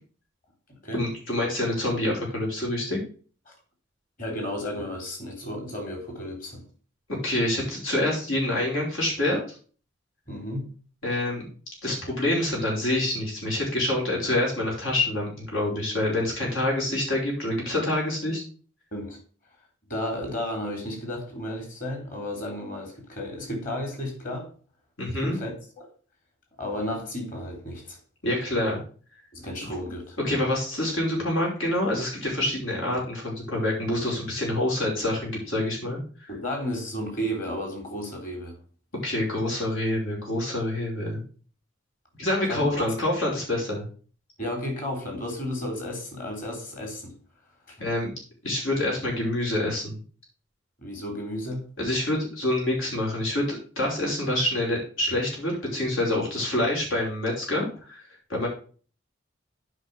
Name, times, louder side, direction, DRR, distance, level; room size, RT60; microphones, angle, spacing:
voice 1, 0.9-3.0 7.1-9.4 11.0-11.5 11.8-18.4 25.0-25.4 28.2-28.8 30.2-36.3 39.0-41.2 42.2-43.9 47.8-48.1 48.4-50.0 51.8-58.0 58.3-58.5, left 1 dB, 85° left, 5.5 m, -26 dB
voice 2, 4.2-6.6 10.3-10.7 18.9-19.2 19.9-24.5 25.2-25.9 26.6-28.0 29.3-30.2 36.3-38.6 42.5-42.9 44.4-47.1 47.7-47.9 50.8-51.7, left 1 dB, 40° left, 3.5 m, -33 dB
8.2 x 5.6 x 6.9 m
head